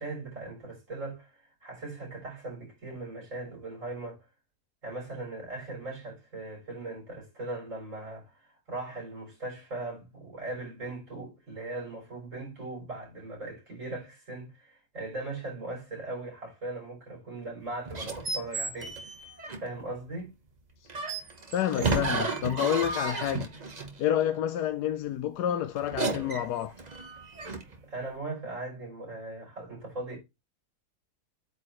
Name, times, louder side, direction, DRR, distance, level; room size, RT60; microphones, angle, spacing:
voice 1, 0.0-4.3 4.8-19.0 19.6-20.3 21.7-22.0 27.9-30.2, right 2 dB, 50° right, 4.7 m, -39 dB
sound 1, 17.9-19.8 20.9-24.0 25.8-27.8, right 3 dB, 30° right, 1.0 m, -33 dB
voice 2, 21.5-23.5 24.0-26.7, left 10 dB, 90° left, 1.2 m, -29 dB
8.6 x 4.6 x 3.0 m
omnidirectional pair, 1.7 m